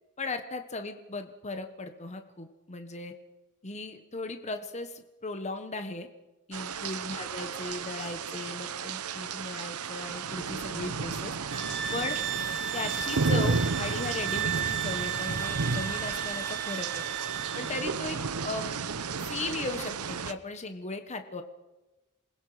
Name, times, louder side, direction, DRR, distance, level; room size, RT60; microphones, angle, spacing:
voice 1, 0.2-3.1 3.6-6.1 6.5-11.4 11.6-12.2 12.7-17.0 17.5-18.8 19.2-21.4, left 3 dB, 30° left, 7 dB, 1.3 m, -37 dB
sound 1, 6.5-20.3, right 5 dB, 85° right, 0.9 m, -33 dB
sound 2, 11.5-17.9, right 9 dB, 55° right, 4.0 m, -34 dB
27.5 x 20.5 x 5.0 m, 1.1 s
head